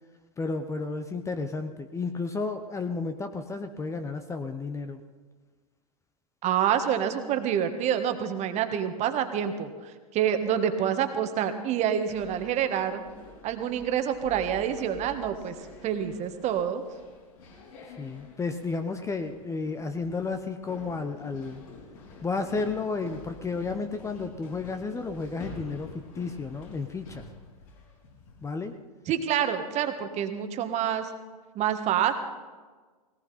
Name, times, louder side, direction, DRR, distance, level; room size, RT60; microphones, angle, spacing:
voice 1, 0.4-5.0 18.0-21.6 22.2-27.3 28.4-28.8, left 4 dB, 15° left, 8 dB, 0.9 m, -32 dB
voice 2, 6.4-13.0 13.4-15.6 15.8-16.8 29.1-31.1 31.5-32.1, right 9 dB, 35° right, 8 dB, 1.6 m, -27 dB
sound 1, 12.1-28.6, left 3 dB, 65° left, 6.0 m, -48 dB
18.5 x 18.0 x 4.3 m, 1.4 s
hypercardioid pair, 105°, 20 cm